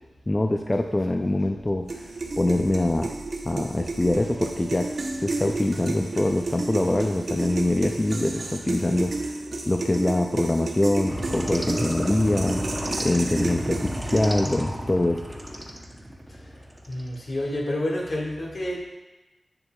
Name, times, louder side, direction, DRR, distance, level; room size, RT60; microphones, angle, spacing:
voice 1, 0.3-3.1 3.4-4.9 5.2-15.4, left 1 dB, 25° left, 4 dB, 0.3 m, -24 dB
sound 1, 1.9-14.5, right 3 dB, 65° right, 0.7 m, -32 dB
sound 2, 4.1-9.2, right 1 dB, 85° right, 1.8 m, -47 dB
sound 3, 11.1-17.1, equal, 10° right, 0.7 m, -33 dB
voice 2, 16.9-18.8, left 1 dB, 60° left, -3 dB, 1.7 m, -29 dB
8.2 x 6.8 x 2.3 m, 1.1 s
wide cardioid pair, 105°, 0 cm